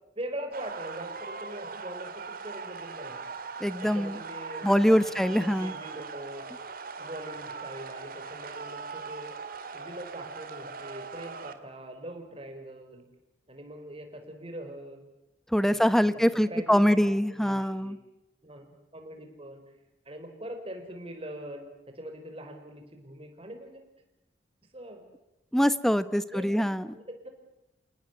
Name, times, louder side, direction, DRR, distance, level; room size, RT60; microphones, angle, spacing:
voice 1, 0.1-3.4 3.8-4.7 5.1-6.5 7.0-9.3 9.7-13.0 13.5-15.0 15.6-17.9 18.4-19.6 20.0-21.7 21.9-23.8 24.7-25.0 26.2-27.3, right 1 dB, 30° right, 5 dB, 4.9 m, -42 dB
sound 1, 0.5-11.5, right 4 dB, 50° right, 2.1 m, -40 dB
voice 2, 3.6-4.2 4.6-5.7 15.5-18.0 25.5-26.9, equal, ahead, 13 dB, 1.0 m, -24 dB
29.0 x 19.0 x 8.1 m, 0.93 s
head